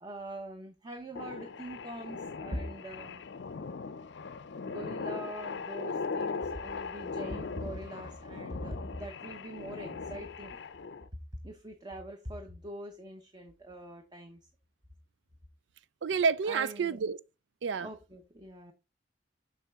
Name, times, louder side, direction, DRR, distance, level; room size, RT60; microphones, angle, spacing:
voice 1, 0.0-3.2 4.6-10.6 11.4-14.5 16.4-17.0 17.8-18.7, right 1 dB, 25° right, 0.9 m, -43 dB
sound 1, 1.1-11.1, left 4 dB, 70° left, 0.5 m, -39 dB
voice 2, 16.0-17.2 17.6-17.9, right 5 dB, 80° right, 0.4 m, -29 dB
7.2 x 5.4 x 3.6 m
head